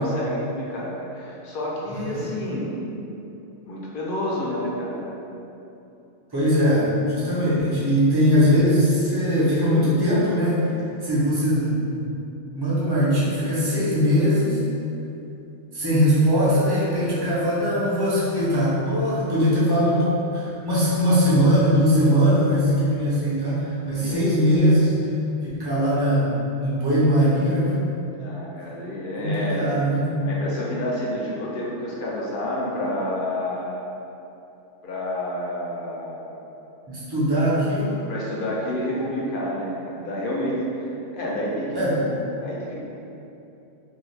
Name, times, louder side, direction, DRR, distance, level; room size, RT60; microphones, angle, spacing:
voice 1, 0.0-2.8 3.6-5.1 24.0-24.2 28.2-29.7 30.2-33.8 34.8-36.4 38.1-42.8, left 1 dB, 60° left, -4 dB, 0.7 m, -29 dB
voice 2, 1.9-2.3 6.3-10.8 11.0-12.1 12.5-14.6 15.7-25.1 25.5-27.8 29.2-30.1 36.9-38.0 41.7-42.0, equal, 25° right, -9 dB, 0.6 m, -21 dB
2.7 x 2.3 x 3.2 m, 2.8 s
omnidirectional pair, 1.2 m